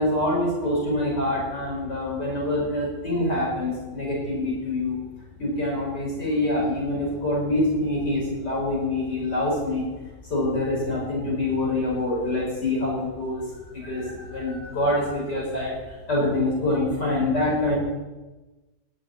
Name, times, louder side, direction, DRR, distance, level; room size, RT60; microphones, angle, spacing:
voice 1, 0.0-5.0 5.4-9.8 10.3-13.4 13.7-17.8, left 1 dB, 70° left, -4 dB, 6.1 m, -25 dB
11.5 x 11.5 x 8.9 m, 1.1 s
omnidirectional pair, 1.8 m